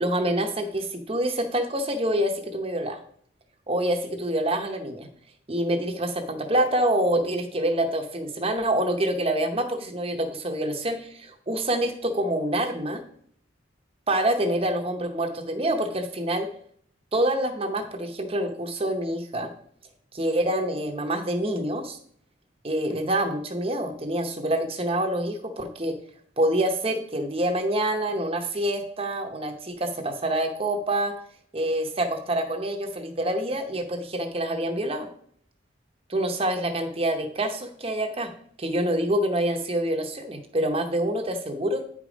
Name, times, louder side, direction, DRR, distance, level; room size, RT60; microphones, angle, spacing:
voice 1, 0.0-3.0 3.7-5.1 5.5-13.0 14.1-16.5 17.1-19.5 20.1-22.0 22.6-26.0 26.4-31.1 31.5-35.1 36.1-38.3 38.6-41.8, right 1 dB, 30° right, 5 dB, 0.8 m, -26 dB
9.2 x 5.1 x 5.0 m, 0.62 s
head